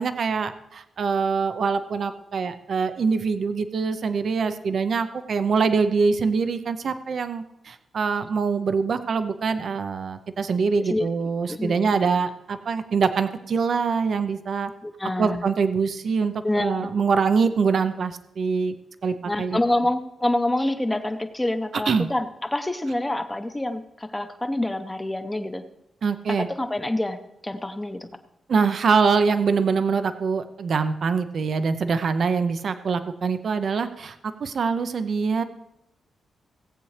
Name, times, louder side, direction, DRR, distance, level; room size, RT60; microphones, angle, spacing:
voice 1, 0.0-14.7 15.2-18.7 19.0-19.6 21.9-22.1 26.0-26.5 28.5-35.4, right 5 dB, 50° right, 10 dB, 0.6 m, -24 dB
voice 2, 10.7-11.0 11.5-11.9 14.8-15.4 16.4-16.9 19.2-25.6 26.3-28.1, left 1 dB, 10° left, 8 dB, 0.7 m, -27 dB
17.5 x 8.3 x 3.3 m, 0.84 s
wide cardioid pair, 150°, 0 cm